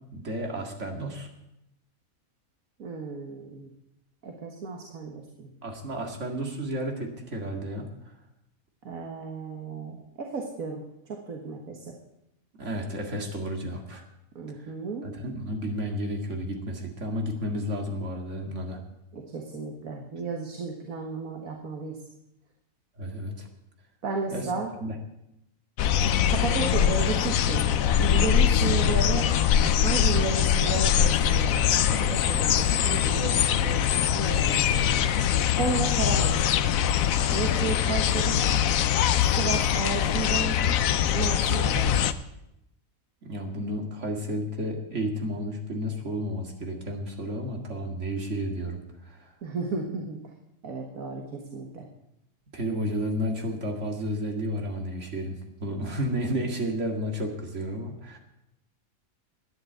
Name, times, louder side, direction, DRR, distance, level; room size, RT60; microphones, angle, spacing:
voice 1, 0.1-1.3 5.6-7.9 12.6-14.0 15.0-18.8 23.0-23.5 24.3-24.5 24.8-25.0 43.2-49.3 52.5-58.2, equal, 60° right, 2 dB, 2.4 m, -32 dB
voice 2, 2.8-3.7 4.2-5.5 8.9-11.9 14.4-15.1 19.1-22.0 24.0-24.7 26.3-27.7 28.0-29.3 29.6-34.6 35.6-36.4 37.3-38.4 39.2-40.6 41.1-41.9 49.4-50.2 50.6-51.9, right 4 dB, 80° right, 2 dB, 1.9 m, -33 dB
sound 1, 25.8-42.1, left 9 dB, 75° left, 1.1 m, -23 dB
13.0 x 9.8 x 7.9 m, 0.87 s
omnidirectional pair, 1.5 m